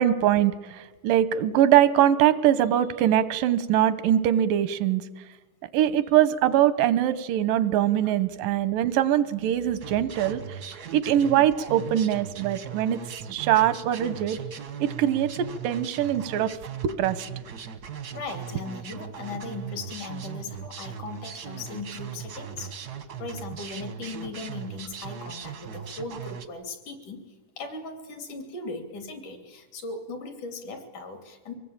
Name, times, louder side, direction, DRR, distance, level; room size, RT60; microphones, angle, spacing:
voice 1, 0.0-5.0 5.7-10.6 10.9-13.0 13.3-14.4 14.8-16.5 16.8-17.3, right 11 dB, 90° right, 14 dB, 2.6 m, -22 dB
sound 1, 9.8-26.5, right 7 dB, 65° right, 0.9 m, -39 dB
voice 2, 18.1-22.7 23.2-31.5, left 3 dB, 65° left, 6 dB, 4.3 m, -38 dB
24.5 x 19.0 x 8.8 m, 1.2 s
omnidirectional pair, 3.8 m